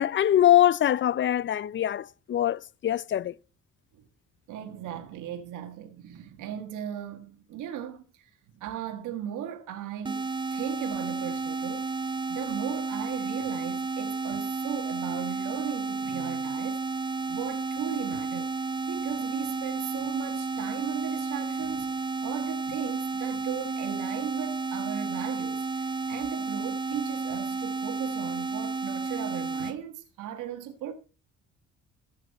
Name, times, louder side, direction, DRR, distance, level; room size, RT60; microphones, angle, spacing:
voice 1, 0.0-3.3, left 11 dB, 40° left, 0.5 m, -23 dB
voice 2, 4.5-11.9 12.3-18.5 18.9-22.0 22.2-30.9, right 10 dB, 90° right, 1.5 m, -37 dB
sound 1, 10.0-29.8, right 3 dB, 15° right, 0.5 m, -32 dB
14.0 x 6.5 x 5.2 m
cardioid pair, 90°, 30 cm